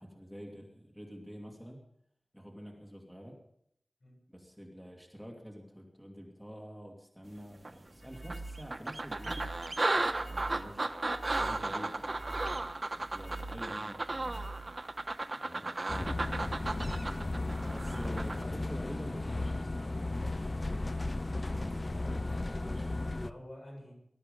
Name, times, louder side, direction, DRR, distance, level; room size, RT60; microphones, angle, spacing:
voice 1, 0.0-1.8 2.3-3.4 4.3-10.9 11.3-14.8 15.4-16.1 17.7-20.7 21.8-22.9, equal, ahead, 0 dB, 2.5 m, -48 dB
sound 1, 7.6-7.7 8.3-18.4, right 2 dB, 55° right, 1.0 m, -35 dB
sound 2, 7.9-15.1, right 2 dB, 25° left, 4.6 m, -45 dB
sound 3, 15.9-23.3, left 2 dB, 40° left, 0.5 m, -35 dB
voice 2, 16.0-16.5 18.0-18.6 19.1-19.2 22.2-22.7 23.1-23.9, left 1 dB, 55° left, 0 dB, 7.4 m, -50 dB
19.5 x 13.0 x 5.4 m, 0.73 s
wide cardioid pair, 70°, 0 cm